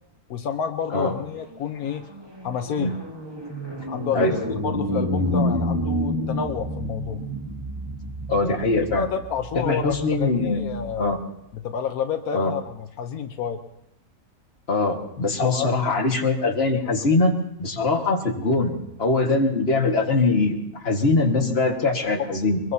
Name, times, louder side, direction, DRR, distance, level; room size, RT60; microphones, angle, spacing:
voice 1, 0.3-2.0 2.4-3.0 3.9-7.2 8.9-9.8 10.1-11.1 11.5-13.6 15.4-15.9 22.6-22.7, left 7 dB, 85° left, 7 dB, 1.3 m, -29 dB
sound 1, 1.5-11.0, equal, 20° right, 1.6 m, -29 dB
voice 2, 8.3-9.1 9.5-11.2 12.3-12.5 14.7-17.3 17.6-22.6, left 3 dB, 45° left, 2 dB, 1.9 m, -22 dB
23.5 x 21.5 x 2.8 m, 0.80 s
omnidirectional pair, 1.5 m